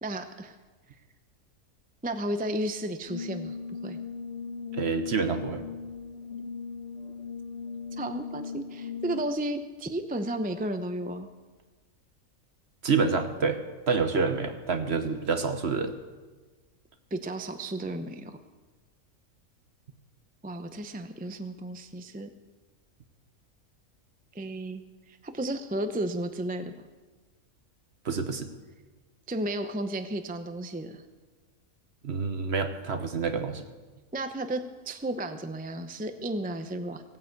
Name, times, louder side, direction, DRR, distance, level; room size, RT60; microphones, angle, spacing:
voice 1, 0.0-0.6 2.0-3.6 3.8-4.0 8.0-11.3 17.1-18.4 20.4-22.3 24.3-24.8 25.1-26.7 29.3-31.0 34.1-37.0, right 1 dB, 10° right, 7 dB, 0.5 m, -33 dB
Brass instrument, 3.1-9.5, left 5 dB, 50° left, 1.3 m, -38 dB
voice 2, 4.7-5.6 12.8-13.6 13.9-15.9 28.0-28.5 32.0-33.7, right 5 dB, 50° right, 8 dB, 1.2 m, -27 dB
16.5 x 9.2 x 8.1 m, 1.3 s
omnidirectional pair, 1.5 m